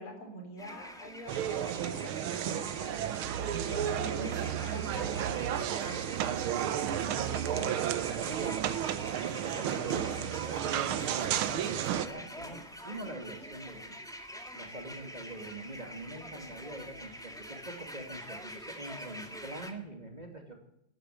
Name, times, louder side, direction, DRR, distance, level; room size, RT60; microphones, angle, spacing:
voice 1, 0.0-6.0, equal, 80° left, 3 dB, 4.9 m, -45 dB
sound 1, 0.6-19.7, equal, ahead, 1.5 m, -46 dB
sound 2, 1.3-12.1, right 10 dB, 80° right, 1.7 m, -32 dB
voice 2, 6.9-8.8 9.4-14.0 14.5-20.6, right 1 dB, 20° right, 3 dB, 2.4 m, -44 dB
14.0 x 11.5 x 8.2 m, 0.78 s
omnidirectional pair, 2.3 m